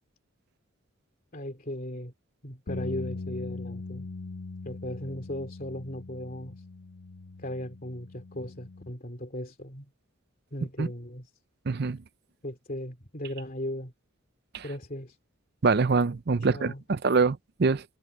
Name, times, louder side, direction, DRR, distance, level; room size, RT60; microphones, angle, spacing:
voice 1, 1.3-2.1 2.4-4.1 4.6-6.6 7.4-9.9 10.5-11.3 12.4-13.9 14.6-15.2 16.4-16.8, left 1 dB, 40° left, 2.9 m, -37 dB
sound 1, 2.7-8.9, left 3 dB, 80° left, 0.9 m, -40 dB
voice 2, 11.7-12.0 14.5-14.6 15.6-17.8, right 4 dB, 50° right, 0.5 m, -24 dB
head